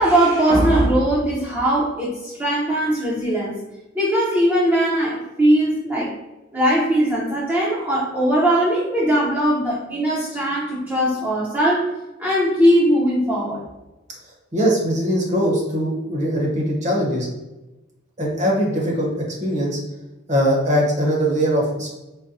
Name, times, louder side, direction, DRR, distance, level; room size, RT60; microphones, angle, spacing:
voice 1, 0.0-3.6 3.9-6.1 6.5-11.9 12.2-13.6, right 1 dB, 10° right, -7 dB, 0.6 m, -19 dB
voice 2, 14.5-17.3 18.2-19.1 19.4-19.8 20.3-21.9, equal, 40° right, -2 dB, 0.9 m, -21 dB
4.0 x 2.2 x 2.6 m, 1.0 s
head